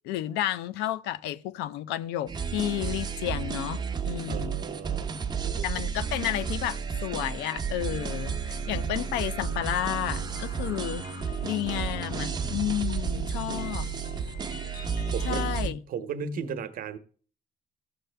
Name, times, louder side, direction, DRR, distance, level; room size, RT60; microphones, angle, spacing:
voice 1, 0.0-4.6 5.6-11.1 11.4-13.9 15.2-15.8, left 13 dB, 90° left, 0.5 m, -31 dB
sound 1, 2.3-15.7, right 6 dB, 25° right, 0.8 m, -32 dB
voice 2, 4.3-5.1 5.4-5.9 13.3-13.6 14.9-17.0, right 6 dB, 55° right, 0.9 m, -37 dB
sound 2, 8.0-15.4, left 6 dB, 60° left, 0.8 m, -45 dB
14.5 x 6.6 x 3.3 m
cardioid pair, 110°, 17 cm